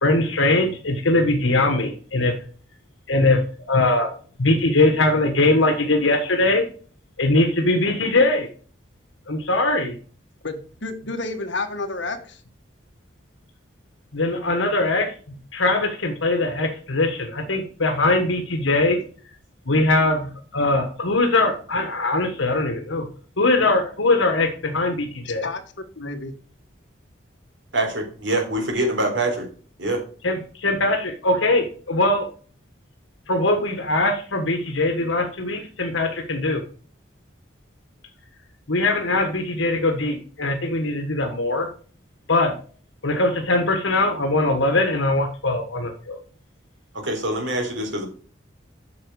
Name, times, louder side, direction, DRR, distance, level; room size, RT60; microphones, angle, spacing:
voice 1, 0.0-2.3 3.1-3.4 3.7-4.1 4.4-6.6 7.2-8.5 9.3-9.9 14.1-15.1 15.5-19.0 19.7-23.1 23.4-25.5 30.2-32.3 33.3-36.6 38.7-41.7 42.3-42.5 43.0-46.2, left 2 dB, 85° left, 1.4 m, -21 dB
voice 2, 10.4-12.4 25.2-25.6 25.9-26.3, left 3 dB, 65° left, 1.5 m, -30 dB
voice 3, 27.7-29.5 29.8-30.0 46.9-48.0, right 1 dB, 70° right, 3.6 m, -24 dB
8.7 x 6.1 x 4.7 m
head